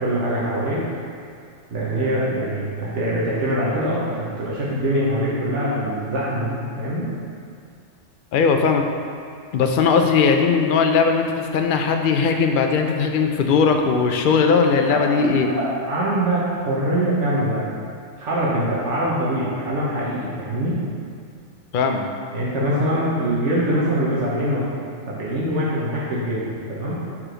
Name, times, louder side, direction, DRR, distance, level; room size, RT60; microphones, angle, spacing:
voice 1, 0.0-0.8 1.7-7.1 14.9-17.7 18.2-20.8 22.3-24.6 25.1-27.0, right 1 dB, 75° right, -7 dB, 1.2 m, -23 dB
voice 2, 8.3-8.8 9.5-15.5 21.7-22.0, left 5 dB, 60° left, 4 dB, 0.5 m, -18 dB
4.7 x 4.3 x 5.0 m, 2.3 s
omnidirectional pair, 1.2 m